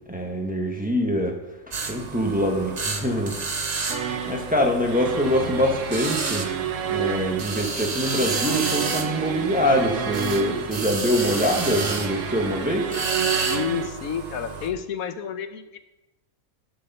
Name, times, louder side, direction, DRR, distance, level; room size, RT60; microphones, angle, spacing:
voice 1, 0.1-1.4 1.9-3.4 4.2-6.5 6.9-13.5, equal, 5° right, 1 dB, 1.1 m, -24 dB
Bench-grinder, 1.7-14.7, right 4 dB, 35° right, 0.9 m, -31 dB
sound 1, 3.9-13.9, right 8 dB, 65° right, 1.1 m, -30 dB
voice 2, 13.4-15.8, left 7 dB, 80° left, 10 dB, 1.2 m, -30 dB
11.5 x 6.5 x 5.4 m, 1.0 s
omnidirectional pair, 1.5 m